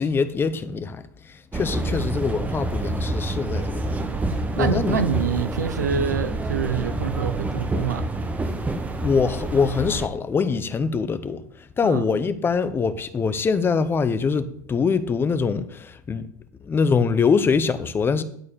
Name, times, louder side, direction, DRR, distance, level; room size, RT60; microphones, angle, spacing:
voice 1, 0.0-4.0 4.6-5.1 5.9-6.1 9.0-16.2 16.6-18.2, left 5 dB, 25° left, 0.8 m, -23 dB
sound 1, 1.5-10.1, right 2 dB, 15° right, 1.1 m, -27 dB
voice 2, 4.6-8.1 11.8-12.0, right 7 dB, 90° right, 0.8 m, -26 dB
11.0 x 4.3 x 6.9 m
hypercardioid pair, 90°, 9 cm